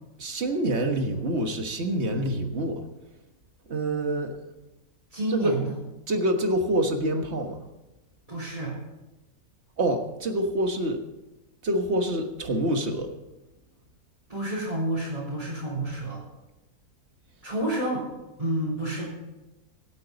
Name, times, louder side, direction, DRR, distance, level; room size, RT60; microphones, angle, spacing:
voice 1, 0.2-2.8 3.7-4.3 5.3-5.5 6.1-7.6 9.8-11.0 11.6-13.1, right 1 dB, 45° right, 5 dB, 1.6 m, -26 dB
voice 2, 5.1-5.8 8.3-8.7 14.3-16.2 17.4-18.1 18.4-19.1, right 1 dB, 20° right, -7 dB, 4.0 m, -29 dB
25.5 x 8.6 x 4.0 m, 1.0 s
omnidirectional pair, 1.7 m